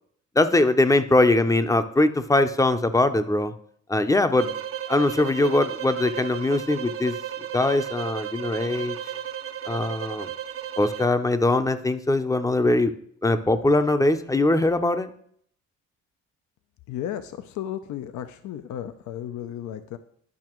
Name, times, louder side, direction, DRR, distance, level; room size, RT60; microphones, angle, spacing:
voice 1, 0.4-3.5 3.9-4.6 4.9-7.1 7.5-9.0 9.7-10.3 10.8-12.9 13.2-15.1, left 2 dB, 10° left, 10 dB, 0.6 m, -21 dB
sound 1, 4.3-11.1, right 10 dB, 50° right, 0.6 m, -34 dB
voice 2, 16.9-20.0, left 10 dB, 70° left, 10 dB, 0.5 m, -34 dB
11.0 x 5.6 x 3.0 m, 0.64 s
cardioid pair, 90°, 30 cm